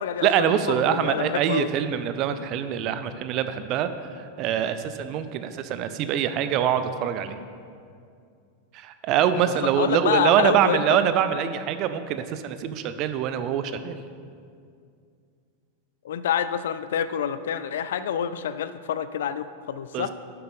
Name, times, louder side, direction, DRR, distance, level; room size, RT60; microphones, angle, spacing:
voice 1, 0.2-3.9 4.2-7.4 8.7-13.9 19.9-20.1, right 9 dB, 40° right, 11 dB, 0.5 m, -24 dB
voice 2, 0.9-1.7 9.5-10.8 16.0-20.1, left 8 dB, 60° left, 12 dB, 0.3 m, -27 dB
11.5 x 7.7 x 3.7 m, 2.3 s
figure-of-eight pair, 90°, 0 cm